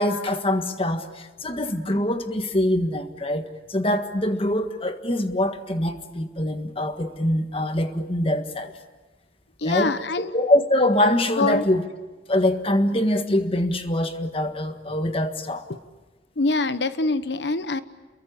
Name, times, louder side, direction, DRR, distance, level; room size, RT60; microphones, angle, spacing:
voice 1, 0.0-8.7 9.6-9.9 10.3-11.8 12.3-15.6, left 1 dB, 30° left, 1.6 m, -24 dB
voice 2, 9.6-10.3 11.4-11.6 15.7-15.8 16.4-17.8, left 3 dB, 70° left, 1.0 m, -24 dB
29.0 x 22.5 x 8.7 m
head